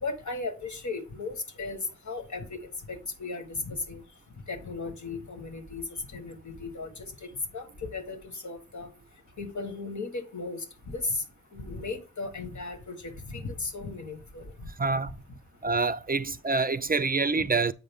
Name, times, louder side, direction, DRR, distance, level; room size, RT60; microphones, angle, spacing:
voice 1, 0.0-2.6 2.9-4.0 4.5-5.8 6.1-8.2 8.4-8.9 9.4-11.2 11.5-14.5, left 3 dB, 80° left, 1.5 m, -36 dB
voice 2, 14.8-15.2 15.6-17.7, right 4 dB, 30° right, 0.4 m, -26 dB
7.8 x 5.3 x 3.6 m
wide cardioid pair, 65°, 29 cm